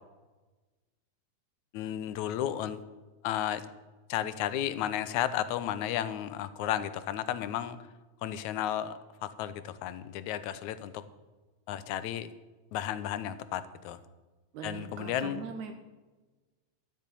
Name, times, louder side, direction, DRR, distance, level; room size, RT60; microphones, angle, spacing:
voice 1, 1.7-2.8 3.2-3.7 4.1-7.8 8.2-11.1 11.7-12.3 12.7-14.0 14.6-15.4, left 11 dB, 80° left, 14 dB, 2.1 m, -33 dB
voice 2, 14.5-15.7, right 6 dB, 75° right, 6 dB, 2.3 m, -41 dB
12.5 x 8.4 x 9.0 m, 1.2 s
omnidirectional pair, 3.4 m